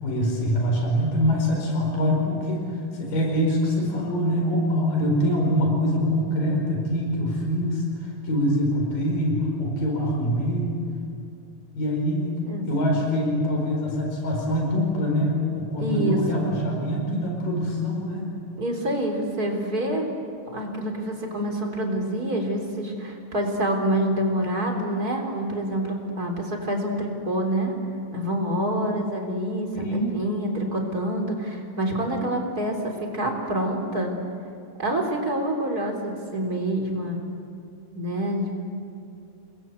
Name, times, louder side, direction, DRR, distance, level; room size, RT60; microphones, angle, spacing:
voice 1, 0.0-10.9 11.8-18.3 29.7-30.1, equal, 85° left, 1 dB, 6.5 m, -24 dB
voice 2, 15.8-16.4 18.6-20.1 20.5-27.7 28.1-34.1 34.8-37.2 37.9-38.6, right 1 dB, 25° right, 2 dB, 3.9 m, -27 dB
30.0 x 21.5 x 8.3 m, 2.4 s
omnidirectional pair, 3.8 m